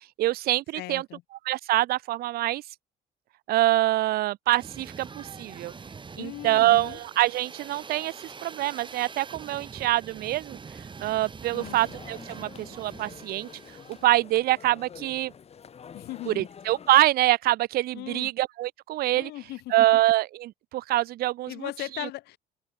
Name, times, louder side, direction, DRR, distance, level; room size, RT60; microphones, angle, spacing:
voice 1, 0.2-1.0 1.5-2.6 3.5-5.7 6.2-8.1 8.4-10.6 11.0-13.5 14.0-15.3 16.3-19.3 19.7-21.7 22.0-22.1, right 16 dB, 65° right, 0.5 m, -25 dB
voice 2, 0.7-1.2 6.2-7.0 11.5-11.8 15.9-16.5 17.9-18.3 19.1-20.0 21.5-22.4, left 17 dB, 75° left, 1.2 m, -38 dB
sound 1, 4.6-14.1, right 5 dB, 30° right, 4.5 m, -44 dB
sound 2, 11.6-17.1, left 7 dB, 40° left, 1.7 m, -47 dB
open air
cardioid pair, 110°, 17 cm